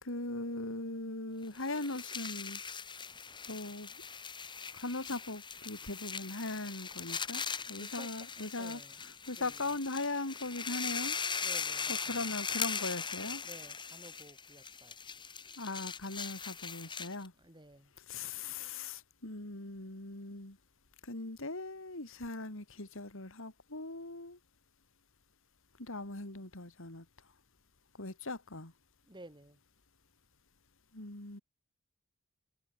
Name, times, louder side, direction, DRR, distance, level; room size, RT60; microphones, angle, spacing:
voice 1, 0.0-2.6 3.5-3.9 4.7-7.4 7.7-8.8 9.3-11.2 11.9-13.4 15.6-17.3 18.1-20.6 21.0-24.4 25.8-27.1 28.0-28.7 30.9-31.4, left 2 dB, 65° left, 3.6 m, -39 dB
sound 1, 1.5-17.3, left 6 dB, 20° left, 1.3 m, -40 dB
voice 2, 7.7-9.8 11.4-12.4 13.4-15.0 17.4-17.9 29.0-29.6, right 1 dB, 20° right, 7.1 m, -55 dB
head